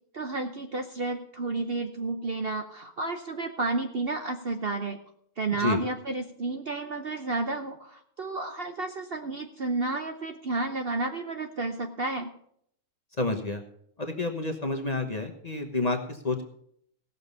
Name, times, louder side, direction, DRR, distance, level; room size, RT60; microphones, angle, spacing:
voice 1, 0.1-5.0 5.4-12.3, right 3 dB, 45° right, 5 dB, 0.9 m, -31 dB
voice 2, 13.2-13.6 14.0-16.4, left 2 dB, 30° left, 4 dB, 1.1 m, -29 dB
17.0 x 6.9 x 5.4 m, 0.68 s
omnidirectional pair, 1.6 m